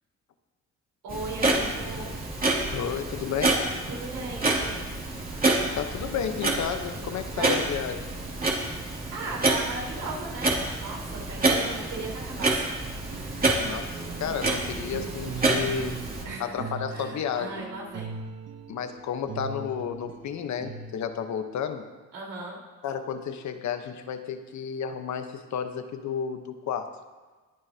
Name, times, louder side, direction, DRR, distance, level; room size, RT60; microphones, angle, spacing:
voice 1, 1.0-2.1 3.9-4.8 7.3-7.6 8.7-10.5 10.8-12.7 16.2-18.2 22.1-22.6, right 3 dB, 80° right, -4 dB, 4.4 m, -37 dB
Clock, 1.1-16.2, right 2 dB, 30° right, 2.7 m, -28 dB
voice 2, 2.7-3.6 5.8-8.1 13.6-16.0 16.4-17.6 18.7-21.8 22.8-26.9, left 7 dB, 65° left, 8 dB, 1.1 m, -32 dB
sound 1, 13.0-21.2, right 5 dB, 55° right, 1.1 m, -40 dB
21.5 x 9.5 x 2.9 m, 1.3 s
cardioid pair, 90°, 30 cm